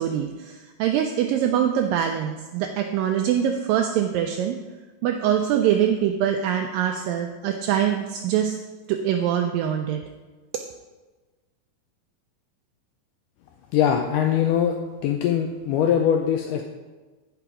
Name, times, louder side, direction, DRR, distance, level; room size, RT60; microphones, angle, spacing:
voice 1, 0.0-4.6 5.0-8.5 8.9-10.0, right 9 dB, 85° right, 4 dB, 2.0 m, -23 dB
voice 2, 13.7-14.7 15.0-16.6, left 9 dB, 90° left, 3 dB, 1.8 m, -21 dB
9.0 x 5.9 x 4.8 m, 1.3 s
omnidirectional pair, 4.4 m